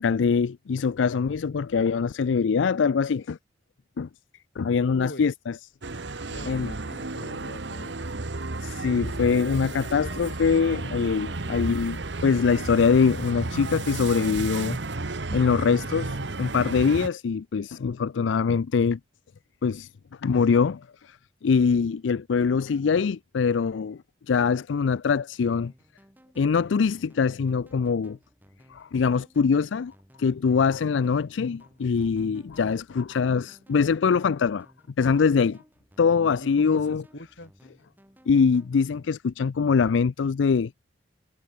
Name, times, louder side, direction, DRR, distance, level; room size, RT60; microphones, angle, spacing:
voice 1, 0.0-3.4 4.0-4.1 4.6-5.6 6.4-6.7 8.6-14.8 15.3-19.0 19.6-19.9 20.2-21.2 21.4-24.0 24.3-25.7 26.4-28.2 28.7-29.9 30.2-34.7 35.0-35.6 36.0-37.0 38.3-40.8, left 5 dB, 85° left, 0.4 m, -23 dB
voice 2, 4.9-5.3 6.3-7.9 36.2-37.5, left 1 dB, 65° left, 3.9 m, -42 dB
sound 1, 5.8-17.1, right 2 dB, 70° right, 1.3 m, -33 dB
sound 2, 25.6-39.1, equal, 10° right, 4.0 m, -58 dB
head